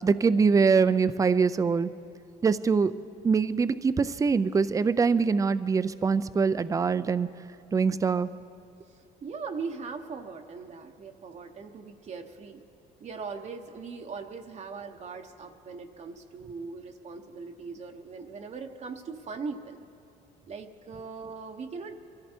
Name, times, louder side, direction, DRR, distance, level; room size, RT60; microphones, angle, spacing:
voice 1, 0.0-1.9 2.4-2.9 3.2-7.3 7.7-8.3, right 5 dB, 20° right, 15 dB, 0.4 m, -23 dB
voice 2, 8.9-12.6 13.0-19.8 20.5-21.9, right 4 dB, 40° right, 4 dB, 0.9 m, -40 dB
23.5 x 14.0 x 4.4 m, 2.4 s
cardioid pair, 110°, 17 cm